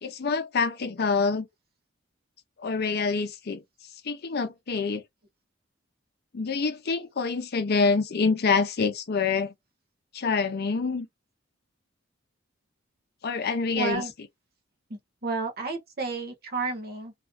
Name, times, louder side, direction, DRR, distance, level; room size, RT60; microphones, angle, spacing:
voice 1, 0.0-1.5 2.6-3.6 4.1-5.0 6.3-9.5 10.1-11.1 13.2-14.0, left 4 dB, 55° left, 0.6 m, -26 dB
voice 2, 13.7-14.1 14.9-17.1, right 4 dB, 50° right, 1.0 m, -31 dB
2.6 x 2.4 x 2.4 m
head